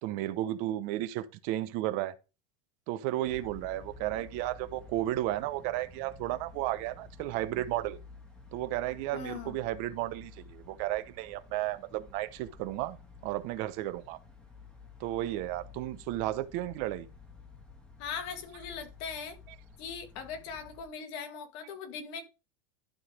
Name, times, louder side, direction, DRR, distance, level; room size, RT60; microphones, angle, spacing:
voice 1, 0.0-2.1 2.9-8.0 8.5-13.0 13.2-14.2 15.0-17.1, right 15 dB, 50° right, 0.8 m, -33 dB
sound 1, 3.2-20.8, left 4 dB, 5° left, 1.5 m, -52 dB
voice 2, 9.1-9.6 18.0-19.4 19.8-22.2, left 6 dB, 60° left, 1.9 m, -40 dB
12.0 x 4.0 x 5.0 m
supercardioid pair, 160°, 16 cm